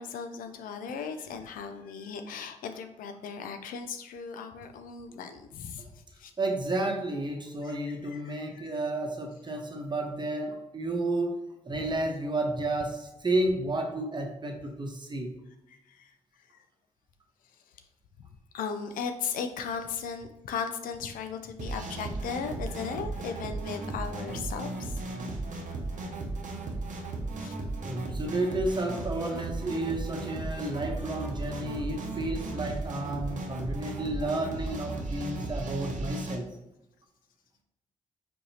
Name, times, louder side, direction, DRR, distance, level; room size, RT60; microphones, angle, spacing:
voice 1, 0.0-5.9 6.2-6.3 7.6-8.8 11.7-11.8 15.7-16.1 18.5-25.0 27.4-27.6 31.6-31.7, left 6 dB, 80° left, 7 dB, 0.4 m, -37 dB
voice 2, 6.4-15.3 26.8-26.9 27.8-36.6, right 2 dB, 35° right, 2 dB, 0.9 m, -32 dB
sound 1, 21.6-36.4, right 2 dB, 65° right, 0.7 m, -36 dB
4.4 x 2.8 x 2.7 m, 0.88 s
supercardioid pair, 50°, 14 cm